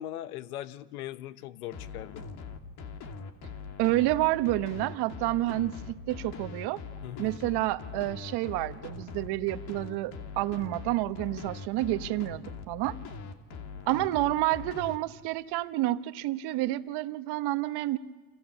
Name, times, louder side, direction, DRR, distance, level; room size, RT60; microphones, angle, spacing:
voice 1, 0.0-2.2 7.0-7.3, left 13 dB, 90° left, 15 dB, 1.0 m, -40 dB
sound 1, 1.7-15.0, left 5 dB, 60° left, 2.7 m, -42 dB
voice 2, 3.8-6.8 7.2-13.0 13.9-18.0, right 16 dB, 65° right, 11 dB, 1.2 m, -29 dB
29.5 x 26.5 x 7.2 m, 1.3 s
hypercardioid pair, 80°, 43 cm